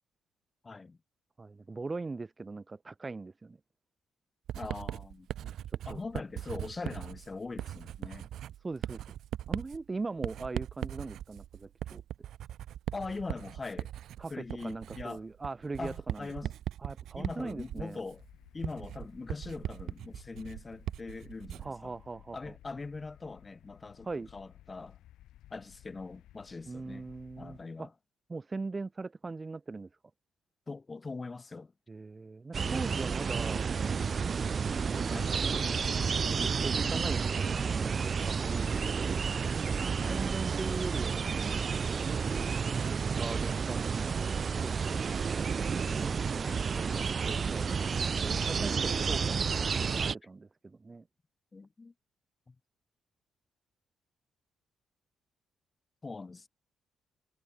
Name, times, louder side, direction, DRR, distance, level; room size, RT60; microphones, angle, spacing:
voice 1, 0.6-1.0 4.5-5.3 5.8-8.3 12.9-13.9 14.3-15.2 15.8-16.5 17.2-18.2 18.5-21.9 22.3-25.0 25.5-27.1 27.4-27.9 30.7-31.7 35.1-35.3 40.0-40.2 46.3-46.6 51.5-51.9 52.5-52.6 56.0-56.5, left 3 dB, 25° left, 4.5 m, -42 dB
voice 2, 1.4-3.6 5.4-5.6 5.9-6.0 8.6-9.0 9.5-12.0 14.2-16.5 16.8-18.0 21.6-22.5 24.0-24.3 26.7-27.9 28.3-29.9 31.9-33.6 34.3-35.3 36.3-39.3 40.1-41.7 42.8-44.1 44.6-45.1 45.9-51.0, right 3 dB, 25° right, 1.9 m, -40 dB
Writing, 4.5-21.8, right 11 dB, 75° right, 1.2 m, -40 dB
sound 1, 18.1-27.7, left 13 dB, 85° left, 6.4 m, -57 dB
sound 2, 32.5-50.2, right 6 dB, 40° right, 1.5 m, -31 dB
cardioid pair, 90°, 0 cm